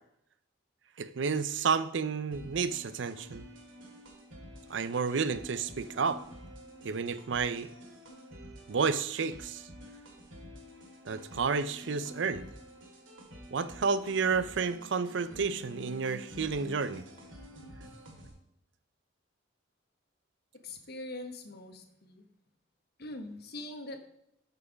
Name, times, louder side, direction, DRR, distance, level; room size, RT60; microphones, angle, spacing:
voice 1, 1.0-3.4 4.7-6.2 6.8-7.7 8.7-9.6 11.1-12.5 13.5-17.0, right 5 dB, 65° right, 14 dB, 0.5 m, -31 dB
sound 1, 2.3-18.3, equal, 85° right, 2.4 m, -49 dB
voice 2, 20.6-22.2 23.0-24.0, left 2 dB, 55° left, 7 dB, 1.0 m, -42 dB
8.1 x 5.5 x 5.1 m, 0.78 s
head